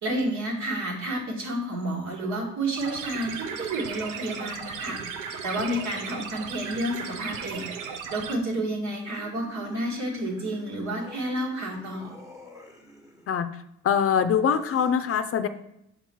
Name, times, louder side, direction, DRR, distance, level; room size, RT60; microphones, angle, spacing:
voice 1, 0.0-7.7 8.1-12.2, right 1 dB, 65° right, -1 dB, 1.9 m, -30 dB
sound 1, 2.8-8.3, right 6 dB, 85° right, 0.7 m, -36 dB
sound 2, 9.1-13.3 14.5-14.9, left 1 dB, 10° right, 1.2 m, -48 dB
voice 2, 13.8-15.5, left 7 dB, 50° left, 10 dB, 0.5 m, -23 dB
5.6 x 3.9 x 4.5 m, 0.81 s
cardioid pair, 90°, 30 cm